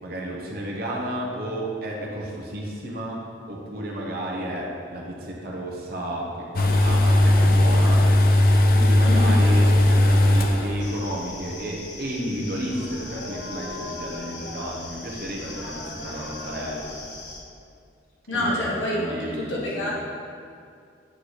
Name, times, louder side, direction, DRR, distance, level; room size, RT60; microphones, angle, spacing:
voice 1, 0.0-3.2 3.5-8.1 8.7-16.8 18.3-19.9, right 1 dB, 55° right, -2 dB, 0.9 m, -32 dB
sound 1, 6.5-11.0 11.3-11.4, left 1 dB, 50° left, 0.4 m, -17 dB
sound 2, 10.8-17.4, left 2 dB, 65° left, 0.9 m, -38 dB
voice 2, 18.3-19.9, left 1 dB, 85° left, -6 dB, 1.4 m, -27 dB
8.0 x 3.2 x 4.2 m, 2.4 s
head